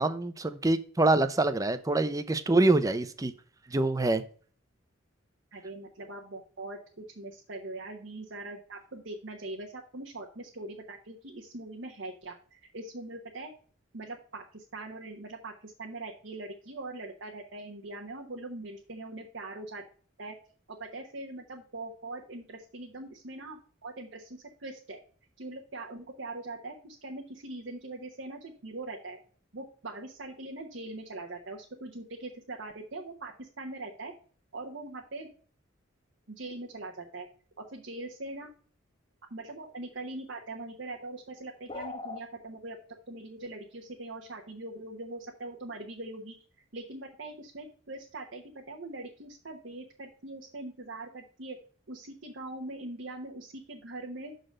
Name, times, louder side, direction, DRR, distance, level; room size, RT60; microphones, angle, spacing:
voice 1, 0.0-3.3 3.7-4.2, right 2 dB, 20° right, 11 dB, 0.5 m, -25 dB
voice 2, 5.5-13.5 13.9-19.8 20.2-20.3 20.7-25.0 25.4-29.2 29.5-34.1 34.5-35.3 36.3-37.3 37.6-38.5 39.3-42.8 43.1-46.3 46.7-51.6 51.9-54.3, right 2 dB, 70° right, -1 dB, 1.1 m, -42 dB
sound 1, 41.7-42.2, left 3 dB, 25° left, 0.7 m, -39 dB
6.6 x 4.0 x 6.2 m, 0.44 s
head